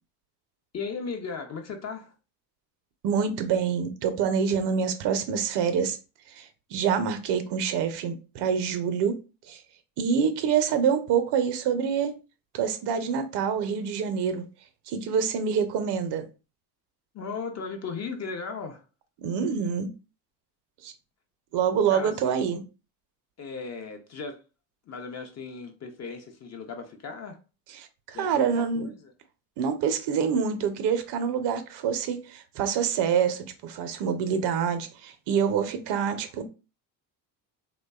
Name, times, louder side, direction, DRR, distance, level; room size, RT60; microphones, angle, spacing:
voice 1, 0.7-2.1 17.1-18.8 21.9-22.4 23.4-24.4 24.9-27.4 28.1-29.1, left 5 dB, 35° left, 0.5 m, -36 dB
voice 2, 3.0-6.0 6.3-9.2 9.5-9.6 10.0-12.1 12.5-14.4 14.9-16.2 19.2-19.9 20.8-20.9 21.5-22.6 27.7-28.9 29.6-36.4, right 7 dB, 55° right, 0.6 m, -26 dB
2.5 x 2.1 x 2.3 m
hypercardioid pair, 75°, 49 cm